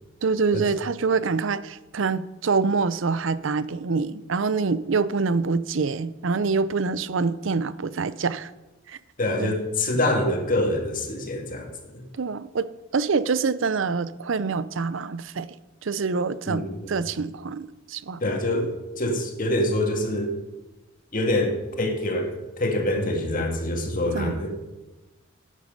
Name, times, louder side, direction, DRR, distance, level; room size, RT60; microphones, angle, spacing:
voice 1, 0.2-8.5 8.9-9.0 9.4-9.5 12.1-15.5 15.8-18.2 24.1-24.4, right 4 dB, 70° right, 16 dB, 0.5 m, -26 dB
voice 2, 9.2-12.0 16.5-17.0 18.2-20.3 21.1-24.5, left 1 dB, 40° left, 3 dB, 1.8 m, -25 dB
12.0 x 8.5 x 5.2 m, 1.1 s
head